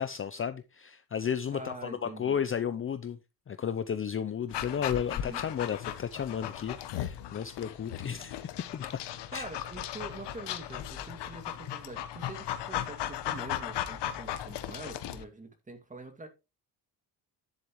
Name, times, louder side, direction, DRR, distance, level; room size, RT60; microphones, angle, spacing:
voice 1, 0.0-3.2 3.5-8.9 9.3-9.4, left 8 dB, 30° left, 0.6 m, -33 dB
voice 2, 1.5-2.4 5.1-5.4 9.3-16.3, right 2 dB, 20° right, 2.3 m, -45 dB
Dog, 4.5-15.2, left 11 dB, 80° left, 1.2 m, -37 dB
10.5 x 7.7 x 3.1 m
cardioid pair, 130°, 41 cm